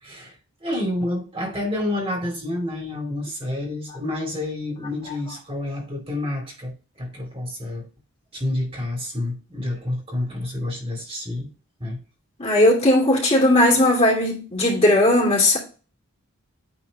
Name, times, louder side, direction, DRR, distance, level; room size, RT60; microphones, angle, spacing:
voice 1, 0.0-0.3 0.6-7.9 8.3-11.5 11.8-12.0, left 1 dB, 25° right, 2.7 m, -29 dB
voice 2, 12.4-15.6, left 1 dB, 30° left, 2.7 m, -17 dB
9.3 x 3.9 x 4.1 m
head